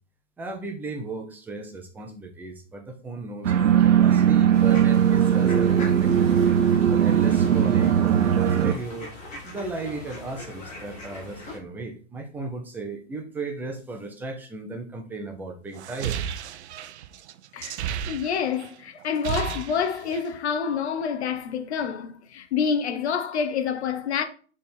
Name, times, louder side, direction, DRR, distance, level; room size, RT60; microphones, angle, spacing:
voice 1, 0.4-6.3 6.9-9.1 9.4-16.2, right 3 dB, 5° right, 0.6 m, -36 dB
sound 1, 3.4-8.7, right 9 dB, 90° right, 0.8 m, -19 dB
sound 2, 4.5-11.6, left 2 dB, 20° left, 2.0 m, -41 dB
sound 3, 15.8-18.7 19.0-20.4, right 9 dB, 60° right, 0.6 m, -33 dB
voice 2, 18.1-24.2, left 6 dB, 60° left, 1.0 m, -27 dB
6.1 x 3.6 x 4.3 m
hypercardioid pair, 140°, 37 cm